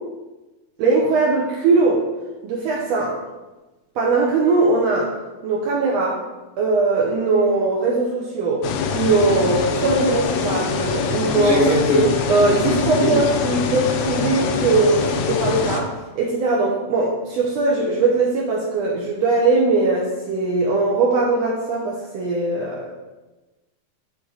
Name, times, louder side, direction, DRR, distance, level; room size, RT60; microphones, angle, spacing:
voice 1, 0.8-2.0 2.4-3.2 3.9-5.1 5.4-6.2 6.6-8.7 8.9-11.7 12.3-15.9 16.2-22.9, right 3 dB, 70° right, -3 dB, 1.7 m, -20 dB
sound 1, 8.6-15.8, left 5 dB, 85° left, 1.4 m, -24 dB
voice 2, 11.4-12.1 12.6-13.2, left 1 dB, 40° left, -8 dB, 1.6 m, -19 dB
8.1 x 3.7 x 3.9 m, 1.1 s
omnidirectional pair, 3.6 m